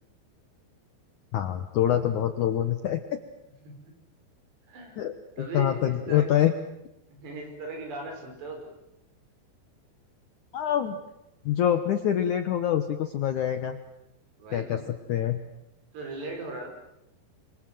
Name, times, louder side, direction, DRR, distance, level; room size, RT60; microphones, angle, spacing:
voice 1, 1.3-3.2 5.0-5.1 5.5-6.5 10.5-11.0 11.5-13.8 14.5-14.8 15.1-15.4, left 10 dB, 80° left, 9 dB, 1.7 m, -25 dB
voice 2, 4.7-5.0 5.4-6.3 7.2-8.7 14.4-14.8 15.9-16.7, right 2 dB, 65° right, 2 dB, 7.6 m, -38 dB
28.0 x 24.0 x 7.8 m, 0.87 s
omnidirectional pair, 5.2 m